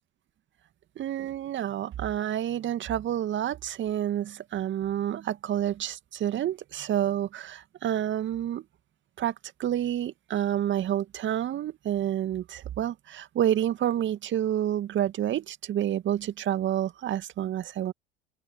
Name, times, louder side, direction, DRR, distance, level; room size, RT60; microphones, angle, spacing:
voice 1, 1.0-8.6 9.2-9.3 9.6-17.9, right 11 dB, 40° right, 2.2 m, -29 dB
figure-of-eight pair, 70°, 30 cm